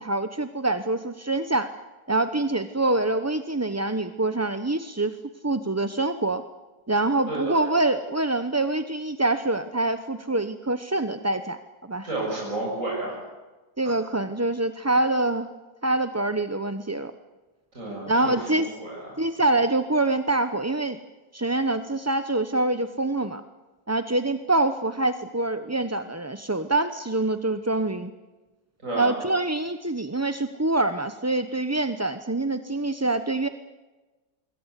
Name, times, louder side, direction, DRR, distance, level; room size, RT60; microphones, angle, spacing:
voice 1, 0.0-1.7 2.1-5.1 5.4-6.4 6.9-11.6 11.9-12.1 13.8-15.5 15.8-17.1 18.1-18.7 19.2-21.0 21.3-23.4 23.9-28.1 29.0-33.5, right 2 dB, 15° right, 9 dB, 0.6 m, -25 dB
voice 2, 12.0-13.2 17.7-19.1 28.8-29.1, right 2 dB, 50° right, -4 dB, 8.1 m, -31 dB
26.5 x 23.0 x 8.3 m, 1.2 s
omnidirectional pair, 1.7 m